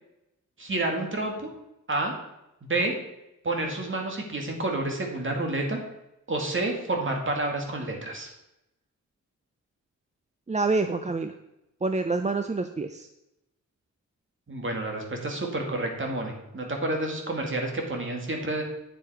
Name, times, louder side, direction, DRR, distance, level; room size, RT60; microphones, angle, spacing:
voice 1, 0.6-1.5 1.9-2.1 2.6-2.9 3.4-5.8 6.3-8.3 14.5-18.6, right 2 dB, 40° right, 1 dB, 2.2 m, -29 dB
voice 2, 10.5-11.3 11.8-13.1, right 3 dB, 25° right, 8 dB, 0.5 m, -27 dB
9.1 x 7.3 x 4.8 m, 0.89 s
wide cardioid pair, 110°, 30 cm